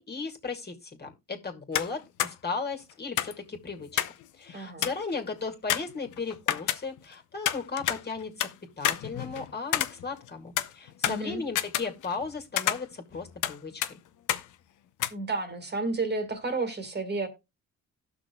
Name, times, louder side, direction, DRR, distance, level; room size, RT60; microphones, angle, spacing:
voice 1, 0.0-4.0 4.4-8.5 8.8-13.8, left 4 dB, 35° left, 2.1 m, -36 dB
sound 1, 1.7-1.9 2.2-2.3 3.2-4.2 4.5-4.6 4.8-5.1 5.7-7.1 7.4-8.5 8.8-10.3 10.6-12.3 12.6-13.6 13.8-13.9 14.3-14.4 15.0-15.1, left 12 dB, 80° left, 0.8 m, -29 dB
voice 2, 4.5-4.9 11.0-11.4 15.1-17.3, right 3 dB, 35° right, 1.9 m, -31 dB
18.0 x 6.1 x 2.3 m
cardioid pair, 90°, 30 cm